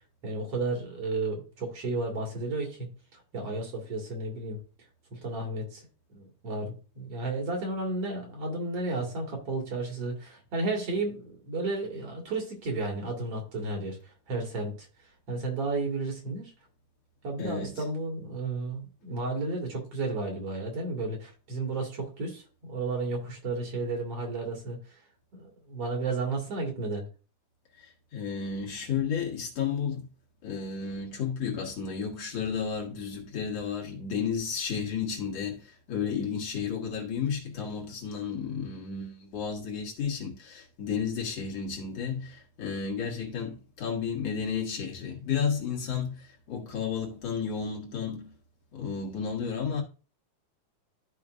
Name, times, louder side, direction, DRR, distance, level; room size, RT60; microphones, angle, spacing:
voice 1, 0.2-4.6 5.1-14.9 15.3-16.5 17.2-24.8 25.3-27.1, right 3 dB, 55° right, 2.9 m, -33 dB
voice 2, 17.4-17.8 27.8-30.1 30.4-48.3 48.7-49.8, left 6 dB, 60° left, 2.5 m, -32 dB
13.0 x 5.0 x 2.5 m
omnidirectional pair, 3.4 m